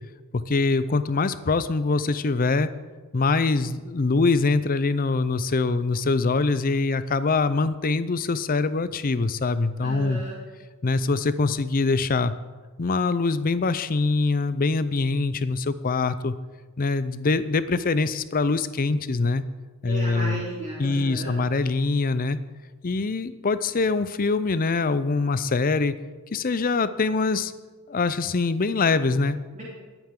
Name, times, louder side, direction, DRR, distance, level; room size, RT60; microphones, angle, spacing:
voice 1, 0.3-2.7 3.1-10.2 10.8-12.3 12.8-16.3 16.8-19.4 19.8-20.4 20.8-22.4 22.8-25.9 26.3-27.5 27.9-29.4, left 3 dB, 40° left, 14 dB, 0.5 m, -23 dB
voice 2, 9.8-10.3 19.9-21.4 29.5-29.6, right 1 dB, 35° right, -8 dB, 3.7 m, -34 dB
20.5 x 9.0 x 3.8 m, 1.4 s
head